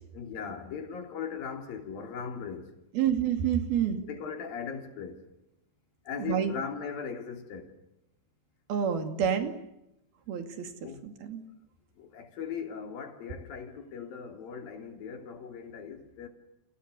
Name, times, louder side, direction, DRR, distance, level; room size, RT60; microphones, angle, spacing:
voice 1, 0.1-2.8 4.1-5.3 6.1-7.8 10.8-11.0 12.0-16.3, left 6 dB, 70° left, 4.7 m, -39 dB
voice 2, 2.9-4.0 6.2-6.5 8.7-9.6 10.3-10.7 11.0-11.4, right 8 dB, 85° right, 4.4 m, -28 dB
30.0 x 28.5 x 6.9 m
omnidirectional pair, 4.2 m